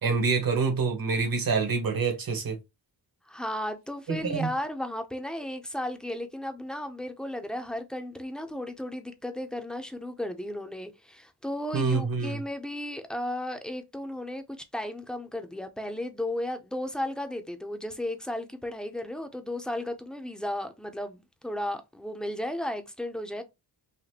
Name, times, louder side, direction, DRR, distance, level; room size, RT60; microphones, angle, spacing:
voice 1, 0.0-2.6 4.1-4.5 11.7-12.4, right 4 dB, 55° right, 1.3 m, -26 dB
voice 2, 3.3-14.4 14.7-23.4, left 1 dB, ahead, 0.6 m, -34 dB
4.1 x 2.6 x 2.9 m
cardioid pair, 90°, 41 cm